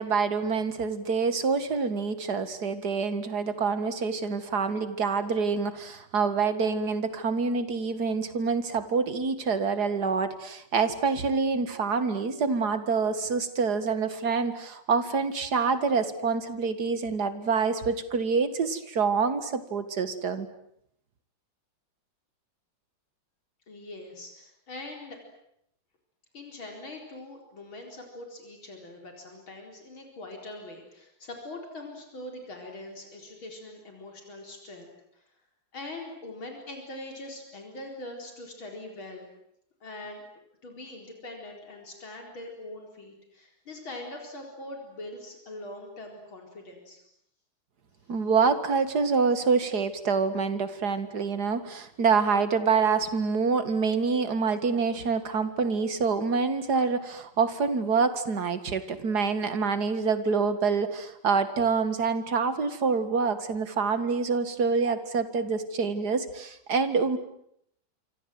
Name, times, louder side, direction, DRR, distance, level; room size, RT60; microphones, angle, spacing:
voice 1, 0.0-20.5 48.1-67.2, right 5 dB, 50° right, 11 dB, 2.4 m, -26 dB
voice 2, 23.7-25.2 26.3-35.3 35.7-39.3 39.8-40.2 40.6-47.0, left 2 dB, 75° left, 2 dB, 5.2 m, -42 dB
27.0 x 25.0 x 7.9 m, 0.73 s
omnidirectional pair, 2.2 m